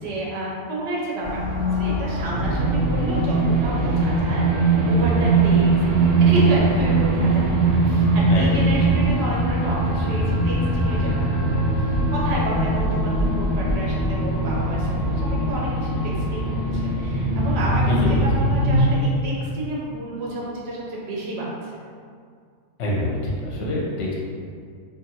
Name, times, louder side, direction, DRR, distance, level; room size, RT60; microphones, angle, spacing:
voice 1, 0.0-5.7 6.2-11.2 12.1-17.9 18.2-21.7, right 1 dB, 60° right, -4 dB, 0.7 m, -30 dB
sound 1, 1.2-18.8, equal, 5° left, 0.5 m, -27 dB
sound 2, 2.3-18.9, right 3 dB, 90° right, 0.5 m, -22 dB
sound 3, 4.0-14.8, right 1 dB, 90° left, 1.1 m, -30 dB
voice 2, 8.3-8.8 17.9-18.2 22.8-24.1, left 1 dB, 60° left, -5 dB, 0.8 m, -26 dB
2.6 x 2.5 x 2.7 m, 2.2 s
omnidirectional pair, 1.6 m